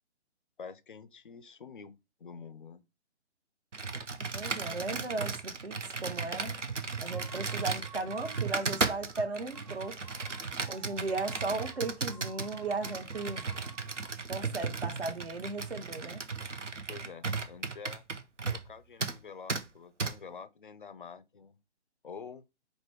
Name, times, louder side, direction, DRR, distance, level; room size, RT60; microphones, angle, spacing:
voice 1, 0.6-1.9 2.2-2.8 16.9-18.0 18.5-21.6 22.0-22.4, left 5 dB, 45° left, 0.4 m, -47 dB
Computer keyboard, 3.7-18.7 19.0-19.2 19.5-19.6 20.0-20.1, right 4 dB, 90° right, 0.7 m, -35 dB
voice 2, 4.3-6.6 7.0-10.1 10.7-13.4 14.3-16.2, right 3 dB, 60° right, 0.9 m, -36 dB
sound 1, 6.9-14.2, right 1 dB, 25° right, 0.5 m, -55 dB
4.9 x 2.2 x 4.7 m
figure-of-eight pair, 140°, 35 cm